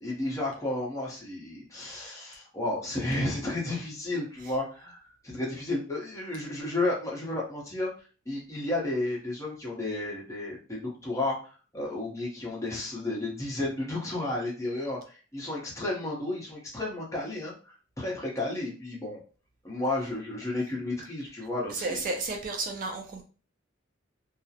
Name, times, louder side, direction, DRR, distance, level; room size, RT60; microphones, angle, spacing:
voice 1, 0.0-5.0 5.2-7.9 8.3-11.4 11.7-19.2 19.6-22.0, left 2 dB, 15° left, -3 dB, 0.7 m, -32 dB
voice 2, 21.7-23.2, right 3 dB, 45° right, 4 dB, 0.4 m, -32 dB
2.3 x 2.0 x 2.7 m, 0.37 s
head